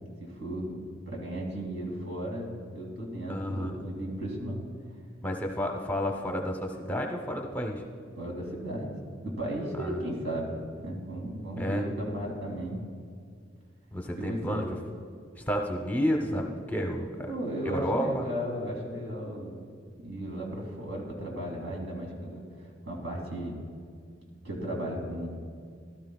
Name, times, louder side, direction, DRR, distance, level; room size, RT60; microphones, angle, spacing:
voice 1, 0.2-0.8 1.1-4.7 8.2-8.9 9.2-12.8 14.1-14.6 17.3-19.6 20.0-22.4 22.8-23.6 24.4-25.4, right 1 dB, 80° right, -1 dB, 2.6 m, -35 dB
voice 2, 3.3-3.7 5.2-7.8 9.8-10.0 11.6-11.8 13.9-14.6 15.4-17.3 17.6-18.2, equal, 10° left, 2 dB, 0.7 m, -31 dB
16.0 x 12.5 x 2.3 m, 2.1 s
head